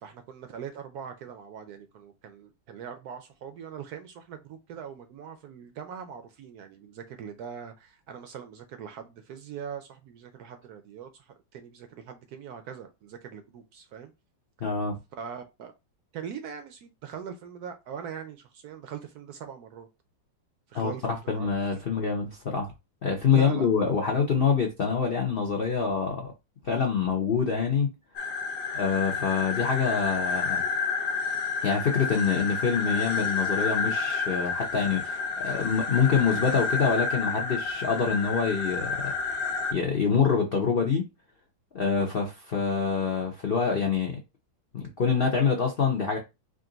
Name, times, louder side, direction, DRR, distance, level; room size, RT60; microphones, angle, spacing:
voice 1, 0.0-14.1 15.2-15.7 16.1-19.9 20.7-21.0 21.3-21.5 21.9-22.0 23.3-23.7, right 8 dB, 70° right, 0.9 m, -41 dB
voice 2, 14.6-15.0 20.7-22.7 23.0-26.3 26.6-27.9 28.7-30.6 31.6-39.1 39.7-41.0 41.7-44.2 44.7-46.2, left 6 dB, 90° left, 0.5 m, -26 dB
sound 1, 28.2-39.7, left 5 dB, 60° left, 1.0 m, -30 dB
3.6 x 2.5 x 3.8 m
omnidirectional pair, 2.0 m